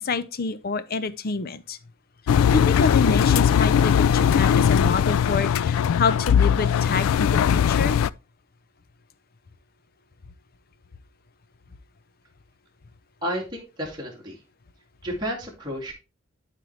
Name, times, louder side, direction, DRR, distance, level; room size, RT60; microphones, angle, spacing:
voice 1, 0.0-1.8 2.5-7.9, left 4 dB, 45° left, 0.6 m, -28 dB
Engine, 2.3-8.1, left 8 dB, 80° left, 0.3 m, -19 dB
voice 2, 13.2-14.4 15.0-15.9, equal, 20° right, 2.4 m, -31 dB
11.5 x 4.6 x 3.2 m
head